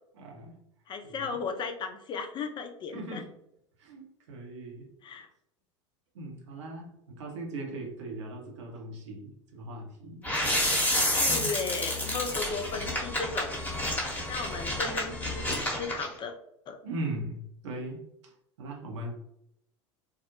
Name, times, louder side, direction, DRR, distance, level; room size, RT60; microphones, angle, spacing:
voice 1, 0.1-0.6 1.0-1.4 2.9-3.3 3.8-4.9 6.1-10.3 11.2-11.5 16.8-18.3 18.6-19.1, right 2 dB, 75° right, 1 dB, 0.7 m, -39 dB
voice 2, 0.9-3.2 5.0-5.3 11.2-13.5 14.3-16.3 16.7-16.8, left 5 dB, 30° left, 6 dB, 0.4 m, -35 dB
sound 1, 10.2-16.1, left 1 dB, 10° left, 0.8 m, -29 dB
2.3 x 2.0 x 2.8 m, 0.78 s
hypercardioid pair, 80°, 16 cm